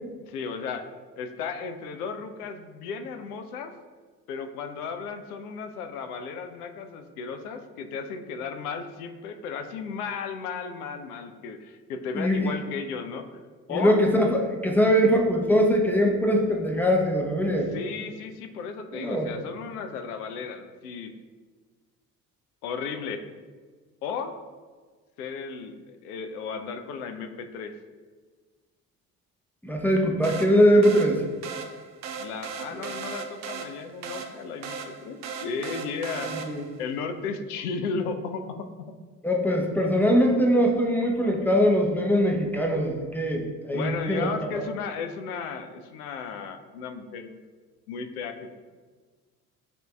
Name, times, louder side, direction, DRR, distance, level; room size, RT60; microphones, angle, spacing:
voice 1, 0.2-0.9 1.2-3.7 4.3-13.4 13.7-14.0 17.4-21.1 22.6-23.2 24.0-24.3 25.2-27.7 32.2-36.3 36.8-38.9 41.4-41.5 43.7-47.4 47.9-48.6, left 5 dB, 80° left, 7 dB, 0.5 m, -34 dB
voice 2, 12.1-12.5 13.7-17.7 18.9-19.3 29.6-31.2 36.2-36.6 39.2-44.3 44.5-44.6, equal, 5° left, 1 dB, 0.6 m, -22 dB
sound 1, 30.2-36.8, right 5 dB, 40° right, 0.5 m, -37 dB
6.8 x 2.6 x 2.2 m, 1.4 s
hypercardioid pair, 55°, 45 cm